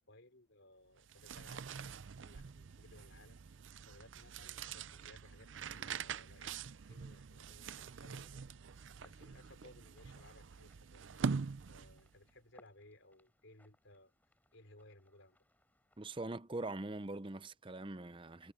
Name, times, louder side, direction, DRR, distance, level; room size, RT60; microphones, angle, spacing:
voice 1, 0.0-1.9 2.2-3.4 3.8-6.6 6.9-8.4 9.0-11.2 11.7-14.1 14.5-15.4, left 1 dB, 70° left, 5.0 m, -61 dB
sound 1, 1.0-12.2, right 5 dB, 70° right, 0.5 m, -44 dB
sound 2, 7.9-16.2, left 1 dB, 10° left, 5.5 m, -71 dB
voice 2, 16.0-18.5, right 2 dB, 25° right, 0.7 m, -42 dB
head